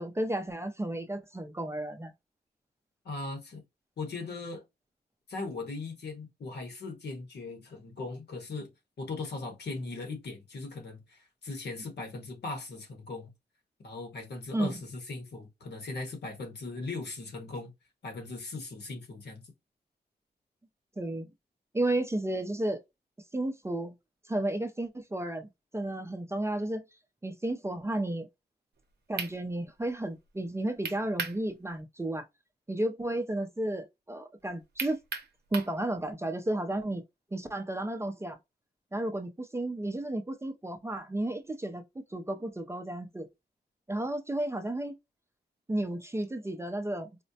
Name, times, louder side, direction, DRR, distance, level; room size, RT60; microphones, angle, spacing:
voice 1, 0.0-2.1 14.5-14.8 21.0-21.3 21.7-22.8 23.3-23.9 24.3-26.8 27.2-28.3 29.1-32.3 32.7-35.0 35.5-37.0 37.3-38.4 38.9-41.8 42.1-43.3 43.9-45.0 45.7-47.1, right 1 dB, 15° right, 0.4 m, -33 dB
voice 2, 3.0-3.6 4.0-4.6 5.3-8.7 9.0-13.3 13.8-17.7 18.0-19.4, left 3 dB, 75° left, 1.2 m, -39 dB
sound 1, 28.8-28.9 29.2-29.4 30.8-31.4 31.8-31.9 34.8-35.8, right 5 dB, 75° right, 0.6 m, -35 dB
4.2 x 2.0 x 2.7 m
wide cardioid pair, 125°, 17 cm